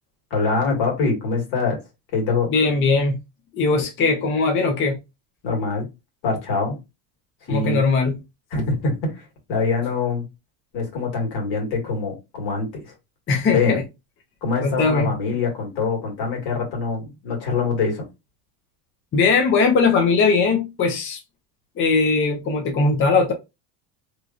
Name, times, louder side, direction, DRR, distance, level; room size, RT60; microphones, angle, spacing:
voice 1, 0.3-1.8 2.1-2.5 5.4-5.9 6.2-6.8 7.5-7.8 8.5-10.3 10.7-12.9 13.5-13.8 14.4-18.0, left 4 dB, 65° left, 1.8 m, -24 dB
voice 2, 2.5-3.2 3.5-5.0 7.5-8.2 13.3-13.8 14.6-15.1 19.1-21.2 21.8-23.3, left 4 dB, 25° left, 0.5 m, -19 dB
3.1 x 2.3 x 2.4 m
cardioid pair, 125°, 47 cm